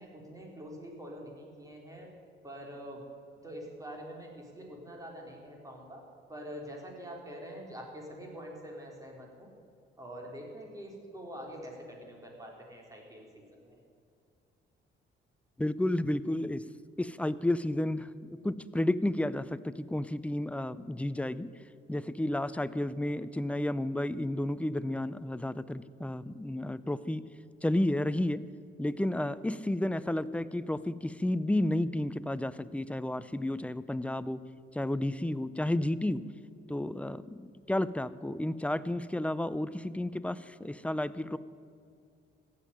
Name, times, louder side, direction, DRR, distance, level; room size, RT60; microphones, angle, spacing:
voice 1, 0.0-2.1 2.4-3.0 3.3-6.0 6.3-9.5 10.0-13.8, equal, 15° right, -1 dB, 4.0 m, -45 dB
voice 2, 15.6-16.6 17.0-21.5 21.9-27.2 27.6-28.5 28.8-34.5 34.7-36.2 36.7-41.4, left 1 dB, 5° left, 15 dB, 0.5 m, -32 dB
15.5 x 7.5 x 10.0 m, 2.3 s
cardioid pair, 90°, 20 cm